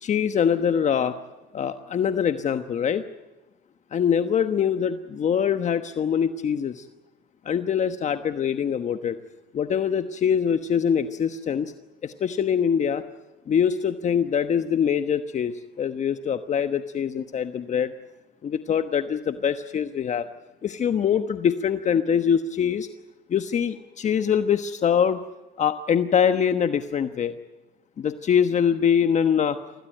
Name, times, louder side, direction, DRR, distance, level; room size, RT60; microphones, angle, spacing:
voice 1, 0.0-1.2 1.5-3.0 3.9-6.9 7.4-9.2 9.5-11.7 12.0-13.0 13.5-17.9 18.4-20.3 20.6-22.9 23.3-25.2 25.6-27.3 28.0-29.6, left 8 dB, 45° left, 9 dB, 1.2 m, -23 dB
25.5 x 18.0 x 9.0 m, 1.1 s
cardioid pair, 110°, 17 cm